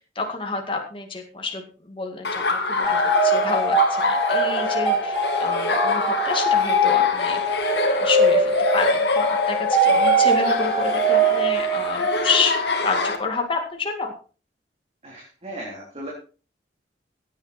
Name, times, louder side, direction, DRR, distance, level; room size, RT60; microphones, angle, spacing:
voice 1, 0.2-7.6 7.9-14.1, left 4 dB, 30° left, 3 dB, 2.1 m, -29 dB
Laughter, 2.2-13.2, left 3 dB, 65° left, 2.3 m, -25 dB
sound 1, 2.8-12.6, right 2 dB, 5° left, 6.3 m, -22 dB
voice 2, 15.0-16.1, right 1 dB, 35° right, -2 dB, 3.5 m, -36 dB
16.5 x 9.5 x 4.3 m, 0.36 s
head